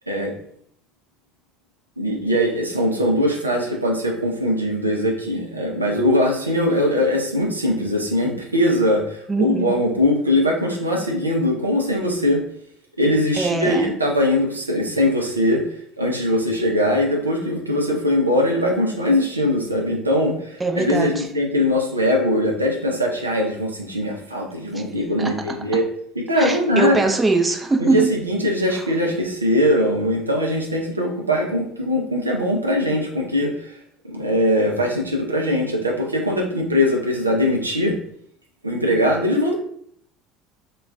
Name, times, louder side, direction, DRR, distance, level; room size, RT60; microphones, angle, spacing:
voice 1, 2.0-12.4 13.0-15.6 16.0-25.8 26.3-27.1 27.8-33.8 34.0-37.9 38.6-39.5, left 1 dB, 90° right, 0 dB, 0.4 m, -21 dB
voice 2, 9.3-9.7 13.4-13.9 20.6-21.3 24.7-24.8 25.2-25.3 26.4-28.1, right 3 dB, 20° right, 4 dB, 0.4 m, -21 dB
2.2 x 2.2 x 3.3 m, 0.67 s
figure-of-eight pair, 65°, 0 cm